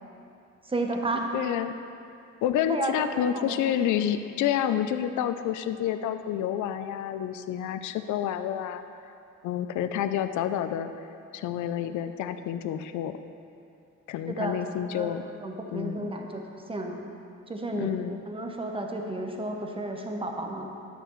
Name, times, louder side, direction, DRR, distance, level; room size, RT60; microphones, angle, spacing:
voice 1, 0.6-1.3 2.7-3.6 14.3-14.6 14.9-16.4 16.7-17.0 17.5-20.7, right 2 dB, 20° right, 2 dB, 1.0 m, -32 dB
voice 2, 1.3-1.7 2.4-9.1 9.4-10.9 11.3-13.2 14.1-15.2 15.7-16.1 17.7-18.2, left 10 dB, 75° left, 10 dB, 0.5 m, -29 dB
11.0 x 6.7 x 3.1 m, 2.6 s
cardioid pair, 90°, 30 cm